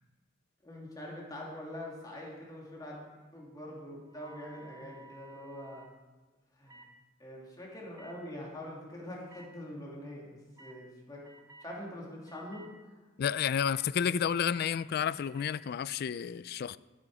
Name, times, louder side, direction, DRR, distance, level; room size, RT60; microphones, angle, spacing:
voice 1, 0.6-3.0 3.3-5.9 6.6-6.8 7.2-11.2 11.6-12.6, left 1 dB, 20° left, 2.7 m, -44 dB
sound 1, 4.1-5.9 6.7-6.9 7.9-8.1 9.3-9.4 10.6-10.8 11.2-11.7 12.3-12.7 13.3-13.8 14.3-14.7 15.1-15.6, right 1 dB, 20° right, 0.7 m, -54 dB
voice 2, 13.2-16.8, left 8 dB, 50° left, 0.3 m, -31 dB
12.5 x 9.3 x 4.9 m
head